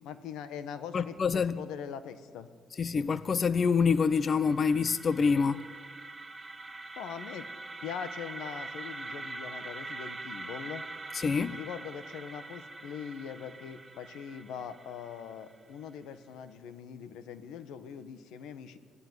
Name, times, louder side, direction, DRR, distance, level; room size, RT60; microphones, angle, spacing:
voice 1, 0.0-2.5 6.9-7.5 7.8-10.8 11.5-18.8, left 8 dB, 90° left, 1.4 m, -42 dB
voice 2, 0.9-1.6 2.8-5.6 11.1-11.6, left 5 dB, 35° left, 0.6 m, -26 dB
sound 1, 3.9-15.8, right 3 dB, 20° right, 1.1 m, -44 dB
26.5 x 16.0 x 9.7 m
cardioid pair, 125°, 0 cm